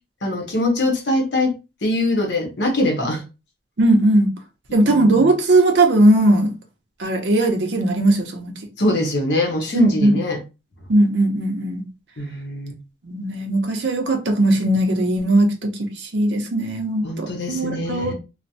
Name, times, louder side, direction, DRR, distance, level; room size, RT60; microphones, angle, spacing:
voice 1, 0.2-1.5 1.8-3.2 4.7-5.3 8.8-10.4 12.2-12.7 17.0-18.1, left 1 dB, 85° left, 0.9 m, -22 dB
voice 2, 3.8-4.3 4.7-6.5 7.0-8.5 9.7-10.2 10.9-11.8 13.0-18.1, right 1 dB, 85° right, 0.7 m, -18 dB
3.1 x 2.1 x 2.7 m
head